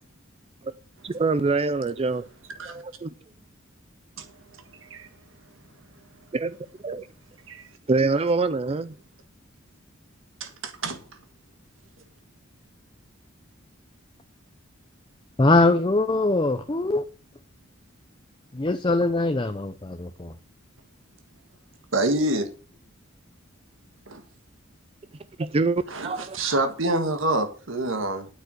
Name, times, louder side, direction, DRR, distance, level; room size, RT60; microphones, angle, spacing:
voice 1, 1.0-2.3 2.6-3.1 6.3-6.6 6.8-7.1 7.9-8.9 25.4-26.4, right 3 dB, 30° right, 14 dB, 0.4 m, -25 dB
voice 2, 10.4-11.0 21.9-22.5 24.1-24.2 25.9-28.3, right 2 dB, 70° right, 7 dB, 1.7 m, -27 dB
voice 3, 15.4-17.0 18.5-20.3, left 2 dB, 25° left, 8 dB, 0.7 m, -22 dB
9.2 x 8.3 x 6.4 m, 0.37 s
head